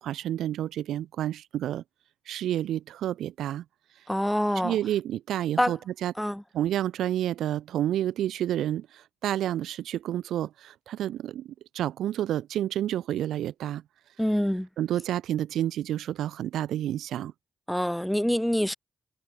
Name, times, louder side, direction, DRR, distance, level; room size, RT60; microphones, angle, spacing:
voice 1, 0.0-1.8 2.3-3.6 4.6-6.1 6.5-13.8 14.8-17.3, right 12 dB, 85° right, 0.4 m, -30 dB
voice 2, 4.1-4.8 5.6-5.8 6.2-6.4 14.2-14.7 17.7-18.7, equal, 5° left, 1.6 m, -26 dB
supercardioid pair, 50°, 0 cm